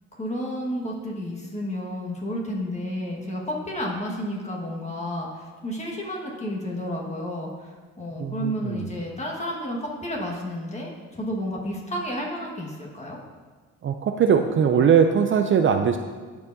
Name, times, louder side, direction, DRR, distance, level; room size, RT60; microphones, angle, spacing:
voice 1, 0.2-13.2, equal, 20° left, -2 dB, 1.6 m, -31 dB
voice 2, 8.2-8.9 13.8-16.0, right 7 dB, 45° right, 6 dB, 0.4 m, -20 dB
11.5 x 4.7 x 2.7 m, 1.4 s
cardioid pair, 90°, 30 cm